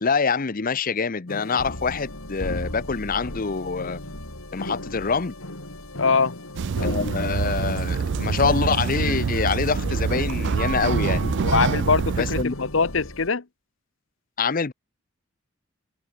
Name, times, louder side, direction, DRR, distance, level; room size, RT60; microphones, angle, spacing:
voice 1, 0.0-4.0 4.5-5.3 6.8-11.2 12.2-12.5 14.4-14.7, left 5 dB, 40° left, 0.7 m, -25 dB
sound 1, 1.3-13.3, left 1 dB, 85° left, 7.7 m, -35 dB
voice 2, 5.9-6.4 11.4-13.4, left 4 dB, 65° left, 1.0 m, -22 dB
sound 2, 6.6-12.4, right 6 dB, 55° right, 0.4 m, -26 dB
head